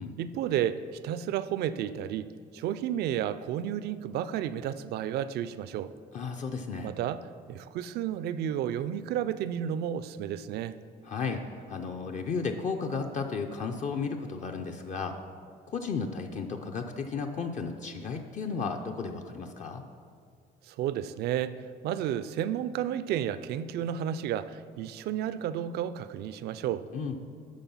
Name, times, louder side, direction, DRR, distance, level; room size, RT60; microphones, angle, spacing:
voice 1, 0.2-5.9 6.8-10.7 20.7-26.9, right 10 dB, 70° right, 14 dB, 0.4 m, -32 dB
voice 2, 6.1-6.9 11.0-11.4 11.7-15.1 15.7-19.8 26.9-27.2, left 5 dB, 45° left, 4 dB, 0.6 m, -34 dB
11.5 x 4.2 x 5.5 m, 2.1 s
cardioid pair, 110°, 17 cm